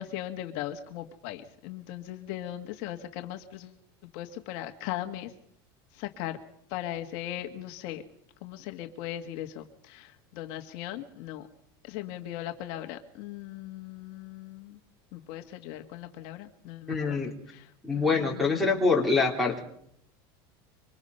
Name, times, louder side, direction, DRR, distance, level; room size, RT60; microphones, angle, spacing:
voice 1, 0.0-3.8 4.1-5.3 5.9-6.4 6.7-8.0 8.4-11.5 11.8-14.8 15.1-17.2 17.5-19.1, left 13 dB, 50° left, 5 dB, 1.6 m, -39 dB
voice 2, 16.9-17.3 17.8-19.6, left 4 dB, ahead, -4 dB, 3.4 m, -25 dB
26.0 x 24.5 x 5.5 m, 0.71 s
cardioid pair, 175°, 12 cm